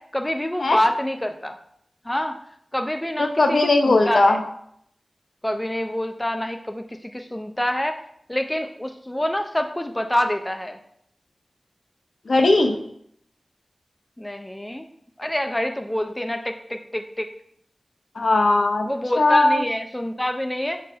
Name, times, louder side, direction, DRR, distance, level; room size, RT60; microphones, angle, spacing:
voice 1, 0.0-1.6 2.1-2.4 2.7-4.4 5.4-8.0 8.3-10.8 14.2-14.9 15.2-17.3 18.9-20.8, left 1 dB, 10° left, 6 dB, 0.4 m, -26 dB
voice 2, 3.2-4.4 12.3-12.8 18.2-18.9 19.2-19.6, left 2 dB, 65° left, 5 dB, 0.7 m, -18 dB
6.3 x 3.9 x 3.8 m, 0.72 s
wide cardioid pair, 95°, 0 cm